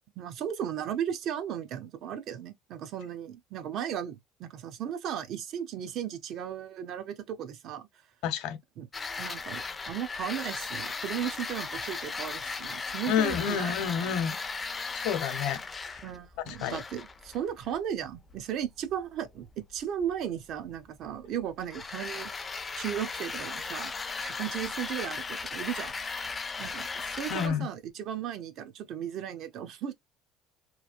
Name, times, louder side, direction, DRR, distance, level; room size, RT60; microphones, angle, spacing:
voice 1, 0.2-7.9 8.8-8.9 9.2-13.8 16.0-22.3 22.8-25.2 25.5-26.1 26.6-29.9, right 9 dB, 55° right, 0.6 m, -36 dB
voice 2, 8.2-8.6 13.1-14.3 15.0-15.6 15.9-16.0 16.5-16.8 27.3-27.7, left 8 dB, 75° left, 0.8 m, -29 dB
sound 1, 8.9-27.5, left 4 dB, 20° left, 0.4 m, -37 dB
3.1 x 2.4 x 2.5 m
cardioid pair, 125°, 0 cm